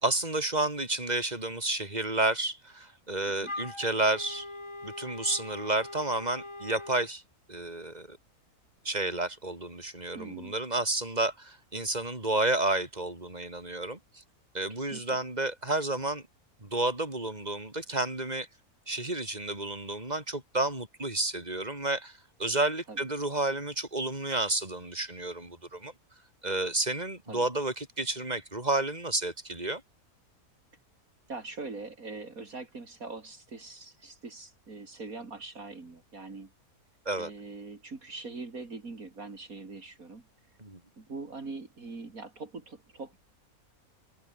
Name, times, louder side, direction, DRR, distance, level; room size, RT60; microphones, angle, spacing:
voice 1, 0.0-4.5 4.8-7.2 7.5-8.2 8.8-14.2 14.5-16.2 16.6-18.5 18.9-25.9 26.4-29.8 37.0-37.3 40.6-40.8, right 2 dB, 25° right, 4.9 m, -31 dB
Wind instrument woodwind instrument, 3.4-7.1, left 2 dB, 20° left, 1.7 m, -41 dB
voice 2, 10.1-10.5 14.7-15.2 22.9-23.1 27.3-27.5 31.3-36.5 37.2-40.2 41.0-43.2, right 3 dB, 70° right, 3.7 m, -42 dB
omnidirectional pair, 1.5 m